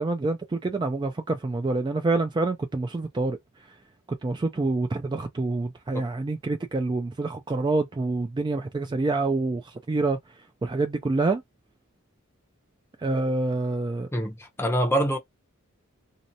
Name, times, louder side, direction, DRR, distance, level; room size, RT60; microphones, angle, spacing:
voice 1, 0.0-3.4 4.2-9.6 9.9-10.2 10.6-11.4 13.0-14.1, right 3 dB, 20° right, 0.3 m, -26 dB
voice 2, 14.1-15.2, equal, 10° left, 0.6 m, -25 dB
2.8 x 2.0 x 2.5 m
head